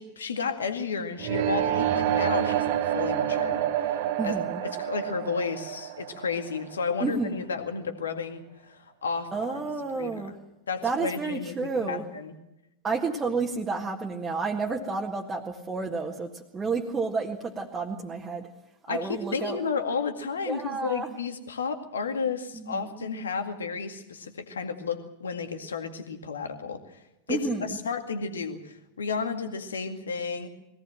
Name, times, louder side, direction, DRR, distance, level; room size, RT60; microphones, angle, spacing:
voice 1, 0.0-10.2 10.7-12.4 18.9-27.0 27.3-30.5, left 5 dB, 70° left, 6 dB, 2.1 m, -32 dB
sound 1, 1.2-7.1, right 11 dB, 50° right, 1.2 m, -28 dB
voice 2, 4.2-4.6 7.0-7.5 9.3-10.4 10.8-12.0 12.8-18.5 18.9-19.6 20.5-21.1 22.5-22.9 27.3-27.8, right 4 dB, 15° right, -1 dB, 1.8 m, -30 dB
21.5 x 17.5 x 7.6 m, 0.90 s
figure-of-eight pair, 90°, 0 cm